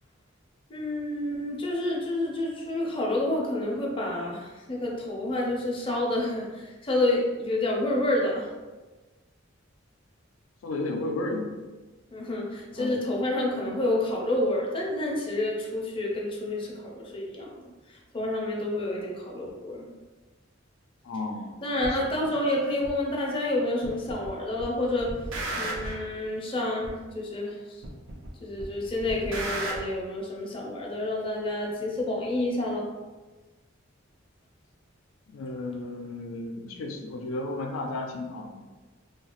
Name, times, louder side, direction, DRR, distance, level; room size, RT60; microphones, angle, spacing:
voice 1, 0.7-8.5 12.1-17.5 18.1-19.9 21.6-25.1 25.6-27.6 28.4-32.9, left 1 dB, 25° left, -3 dB, 0.5 m, -29 dB
voice 2, 10.6-11.5 12.7-13.0 21.0-22.3 35.3-38.6, left 2 dB, 80° left, 2 dB, 0.4 m, -34 dB
sound 1, 21.8-22.0 22.8-22.9 23.8-24.3 24.6-26.1 26.8-26.9 27.8-28.3 28.6-29.8, right 1 dB, 70° right, 0.5 m, -34 dB
2.8 x 2.3 x 2.9 m, 1.2 s
head